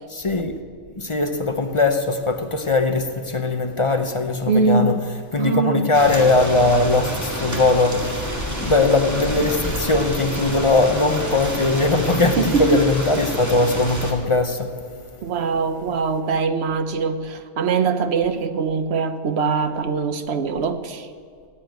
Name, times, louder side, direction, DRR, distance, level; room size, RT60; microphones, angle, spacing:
voice 1, 0.1-0.6 0.9-5.0 5.3-15.3, left 2 dB, 30° left, 0.7 m, -20 dB
voice 2, 4.5-5.0 5.4-5.9 12.4-12.8 15.2-21.1, right 4 dB, 65° right, 1.1 m, -22 dB
sound 1, 5.9-14.1, equal, 15° right, 2.0 m, -28 dB
15.0 x 8.3 x 9.2 m
omnidirectional pair, 1.2 m